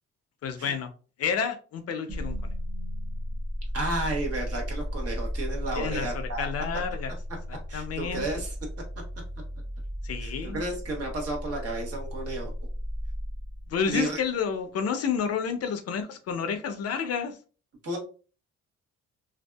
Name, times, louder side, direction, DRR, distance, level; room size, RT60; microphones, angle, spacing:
voice 1, 0.4-0.9 1.2-2.4 5.8-7.1 7.5-8.2 10.0-10.6 13.7-17.4, left 6 dB, 55° left, 0.5 m, -30 dB
sound 1, 2.1-14.2, equal, 25° right, 0.7 m, -35 dB
voice 2, 3.7-6.5 7.7-8.5 10.2-12.5 13.9-14.2 17.8-18.0, right 2 dB, 50° right, 1.0 m, -32 dB
2.6 x 2.3 x 2.2 m
cardioid pair, 90°, 30 cm